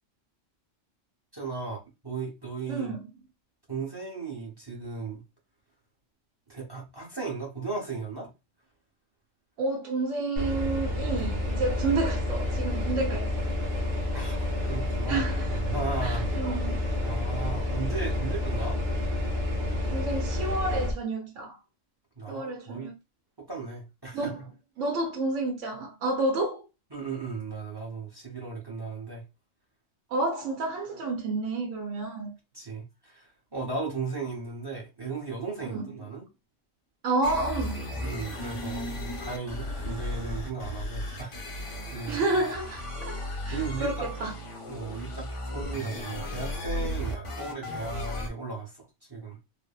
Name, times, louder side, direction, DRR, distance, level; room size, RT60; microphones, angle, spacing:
voice 1, 1.3-2.9 3.7-5.2 6.5-8.3 14.1-14.4 14.6-15.2 15.6-16.8 17.0-18.8 22.2-22.9 23.5-24.3 26.9-29.2 32.5-36.2 38.0-41.4 41.9-42.2 43.5-44.1 44.7-49.4, right 4 dB, 25° right, 0.7 m, -36 dB
voice 2, 2.7-3.0 9.6-13.3 15.1-15.6 16.0-16.8 19.9-21.6 22.3-22.9 24.1-24.4 24.8-26.7 30.1-32.3 35.7-35.9 37.0-37.8 42.1-44.3, right 2 dB, 85° right, 1.0 m, -30 dB
sound 1, 10.4-20.9, left 1 dB, 45° right, 1.0 m, -29 dB
sound 2, 37.2-48.3, left 1 dB, 55° left, 0.3 m, -35 dB
3.3 x 2.1 x 2.3 m
omnidirectional pair, 1.3 m